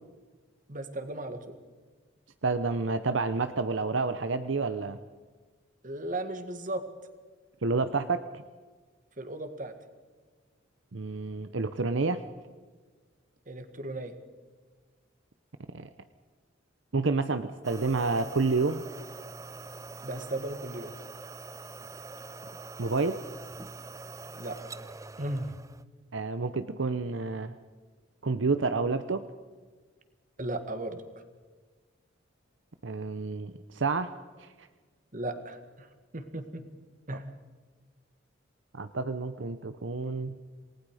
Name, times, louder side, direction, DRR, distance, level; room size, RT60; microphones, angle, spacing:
voice 1, 0.7-1.6 5.8-6.9 9.2-9.7 13.5-14.2 20.0-20.9 24.3-24.6 25.2-25.5 30.4-31.0 35.1-35.9 36.1-36.6 37.1-37.3, right 1 dB, 40° right, 8 dB, 1.9 m, -36 dB
voice 2, 2.4-5.0 7.6-8.4 10.9-12.2 15.7-15.9 16.9-18.8 22.8-23.2 26.1-27.5 28.2-29.3 32.8-34.1 34.4-34.5 37.1-37.2 38.7-40.4, right 3 dB, 70° right, 10 dB, 0.8 m, -29 dB
sound 1, 17.6-25.8, right 3 dB, 15° right, 0.5 m, -44 dB
28.0 x 19.5 x 5.0 m, 1.4 s
head